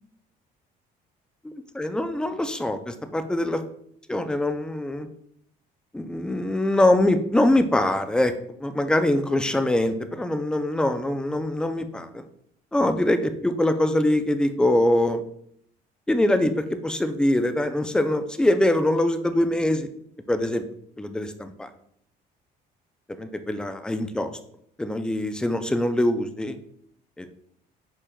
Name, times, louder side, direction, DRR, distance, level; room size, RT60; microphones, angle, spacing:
voice 1, 1.4-3.6 4.1-5.1 5.9-8.3 8.6-12.2 12.7-15.2 16.1-19.9 20.3-20.6 21.0-21.7 23.1-24.3 24.8-26.6 27.2-27.3, left 1 dB, 5° left, 8 dB, 0.3 m, -23 dB
4.9 x 4.4 x 2.3 m, 0.69 s
cardioid pair, 110°, 17 cm